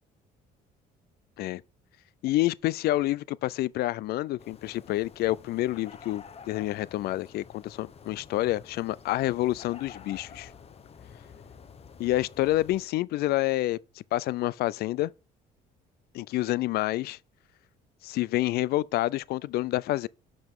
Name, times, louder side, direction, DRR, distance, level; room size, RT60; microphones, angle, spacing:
voice 1, 2.2-10.5 12.0-13.8 14.1-15.1 16.1-17.2 18.0-20.1, left 16 dB, 70° left, 0.4 m, -28 dB
sound 1, 4.4-12.9, left 6 dB, 35° left, 0.9 m, -49 dB
12.0 x 5.1 x 3.6 m
cardioid pair, 110°, 17 cm